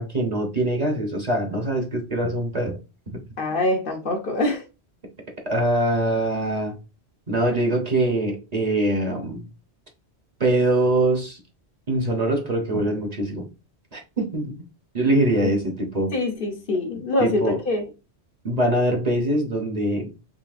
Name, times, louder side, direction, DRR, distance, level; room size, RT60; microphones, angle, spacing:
voice 1, 0.0-2.8 3.1-3.2 5.5-6.8 7.3-9.5 10.4-11.4 11.9-13.5 13.9-14.5 14.9-16.1 17.2-17.6 18.4-20.1, right 1 dB, 40° right, 1.0 m, -23 dB
voice 2, 3.4-4.6 15.4-15.5 16.1-17.8, left 2 dB, 55° left, 0.9 m, -24 dB
4.0 x 3.3 x 2.5 m
omnidirectional pair, 1.1 m